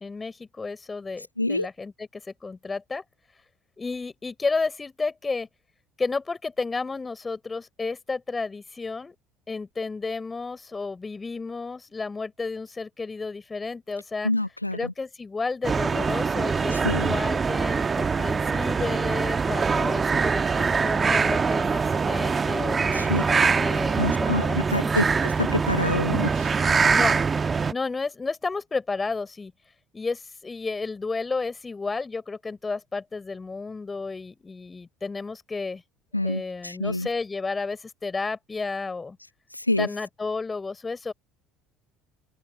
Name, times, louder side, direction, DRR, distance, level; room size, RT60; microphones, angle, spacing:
voice 1, 0.0-3.0 3.8-5.5 6.0-9.1 9.5-14.3 14.7-25.0 26.9-27.1 27.7-29.5 29.9-35.8 36.2-39.2 39.8-41.1, left 4 dB, 20° left, 4.0 m, -32 dB
voice 2, 1.4-1.7 14.2-14.9 16.7-17.1 22.9-23.2 24.0-26.5 36.1-37.1 39.5-39.9, left 2 dB, 90° left, 1.5 m, -27 dB
sound 1, 15.6-27.7, right 5 dB, 25° right, 1.6 m, -23 dB
open air
figure-of-eight pair, 60°, 0 cm